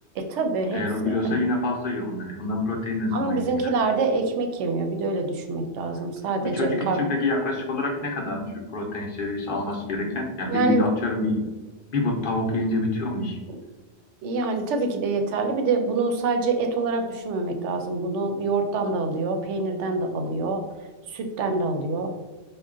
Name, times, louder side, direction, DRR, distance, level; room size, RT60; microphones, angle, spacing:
voice 1, 0.1-1.4 3.1-7.0 10.5-10.8 13.5-13.6 14.2-20.6 21.1-22.1, right 3 dB, 85° right, 5 dB, 0.9 m, -26 dB
voice 2, 0.7-3.7 6.4-11.4 11.9-13.4, left 2 dB, 55° left, 0 dB, 0.7 m, -27 dB
3.7 x 2.1 x 3.6 m, 1.2 s
omnidirectional pair, 1.2 m